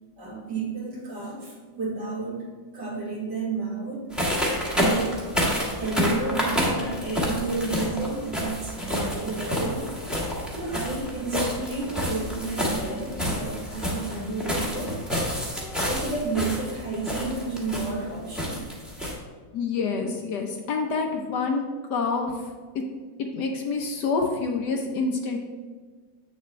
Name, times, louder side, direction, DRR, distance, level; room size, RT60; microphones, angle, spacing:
voice 1, 0.2-2.5 2.7-4.0 4.8-5.2 5.7-10.0 10.6-14.9 15.6-18.6, right 3 dB, 60° right, -4 dB, 2.5 m, -31 dB
sound 1, 4.1-19.1, equal, ahead, 1.3 m, -28 dB
voice 2, 19.5-21.6 21.9-22.3 23.3-25.4, left 4 dB, 65° left, 2 dB, 1.3 m, -27 dB
8.2 x 6.8 x 3.2 m, 1.5 s
omnidirectional pair, 2.1 m